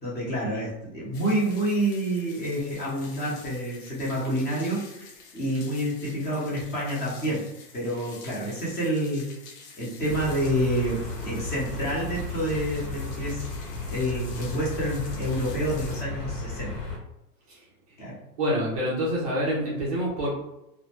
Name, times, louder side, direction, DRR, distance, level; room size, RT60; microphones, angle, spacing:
voice 1, 0.0-7.5 7.7-9.3 9.8-13.5 13.9-16.7 18.0-18.2, right 1 dB, 20° left, -6 dB, 0.7 m, -28 dB
sound 1, 1.1-16.0, left 5 dB, 60° left, 0.7 m, -48 dB
sound 2, 10.1-17.0, left 3 dB, 75° left, 1.0 m, -34 dB
voice 2, 18.4-20.3, equal, 25° right, -5 dB, 0.3 m, -27 dB
2.1 x 2.1 x 2.8 m, 0.89 s
hypercardioid pair, 130°, 48 cm